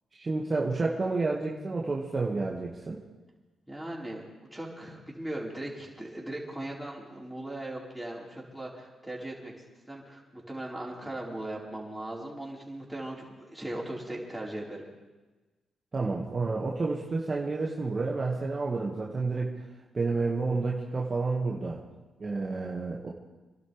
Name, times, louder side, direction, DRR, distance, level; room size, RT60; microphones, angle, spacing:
voice 1, 0.1-3.0 15.9-19.6 19.9-21.8 22.2-23.1, right 3 dB, 40° right, -2 dB, 1.9 m, -30 dB
voice 2, 3.7-4.2 4.5-9.5 9.9-14.8, right 1 dB, 10° right, -4 dB, 4.6 m, -38 dB
27.0 x 12.0 x 3.5 m, 1.2 s
hypercardioid pair, 50°, 0 cm